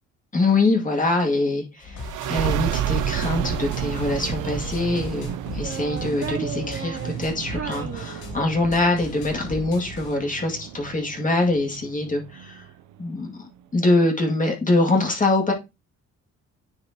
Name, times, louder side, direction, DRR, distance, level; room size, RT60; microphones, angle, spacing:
voice 1, 0.3-2.0 2.3-12.6 13.0-15.5, left 2 dB, 25° left, 2.2 m, -24 dB
sound 1, 1.8-10.2, left 3 dB, 80° left, 2.2 m, -39 dB
Child speech kid speaking, 1.8-3.4 4.2-5.1 5.5-8.7, right 6 dB, 45° right, 1.2 m, -37 dB
sound 2, 2.0-13.3, right 11 dB, 80° right, 0.6 m, -31 dB
9.8 x 4.3 x 2.8 m
cardioid pair, 90°, 30 cm